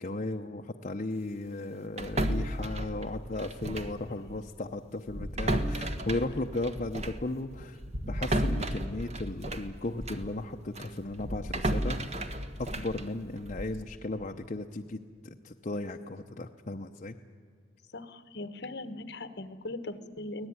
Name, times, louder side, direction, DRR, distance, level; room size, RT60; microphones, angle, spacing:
voice 1, 0.0-7.8 8.1-17.2, left 2 dB, 40° left, 3 dB, 0.8 m, -36 dB
sound 1, 2.0-4.0 4.3-4.5 5.1-10.3 10.7-13.8, right 1 dB, 35° right, 1.5 m, -33 dB
voice 2, 17.9-20.5, left 2 dB, 60° left, 11 dB, 1.3 m, -40 dB
24.5 x 18.0 x 9.7 m, 2.2 s
head